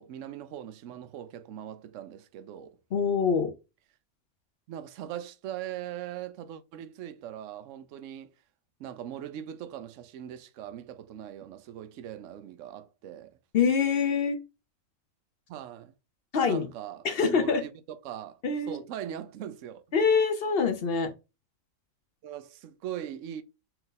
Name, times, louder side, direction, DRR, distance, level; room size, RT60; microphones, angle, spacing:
voice 1, 0.0-2.8 4.7-8.3 8.8-13.4 15.5-15.9 16.5-18.4 18.7-19.8 22.2-23.4, right 10 dB, 65° right, 0.9 m, -40 dB
voice 2, 2.9-3.5 13.5-14.4 16.3-16.7 17.0-17.6 18.4-18.8 19.9-21.1, left 5 dB, 50° left, 0.9 m, -25 dB
4.5 x 2.6 x 3.8 m
omnidirectional pair, 1.5 m